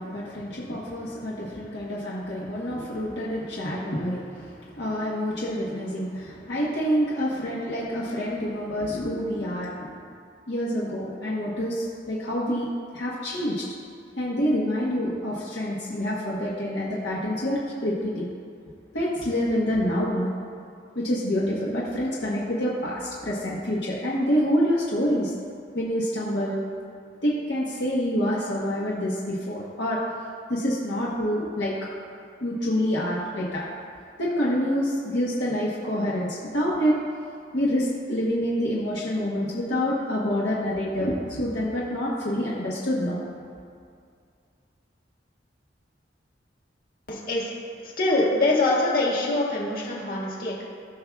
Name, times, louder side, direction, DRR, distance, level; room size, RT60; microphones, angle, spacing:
voice 1, 0.0-10.0 10.5-12.7 12.9-13.6 14.2-18.3 18.9-20.3 20.9-25.3 25.7-26.6 27.2-30.0 30.5-31.7 32.4-33.6 34.2-36.9 37.5-43.2, equal, 75° left, -6 dB, 1.2 m, -27 dB
voice 2, 47.1-47.5 47.8-50.6, left 2 dB, 55° left, -4 dB, 1.7 m, -24 dB
17.0 x 5.9 x 2.3 m, 2.3 s
head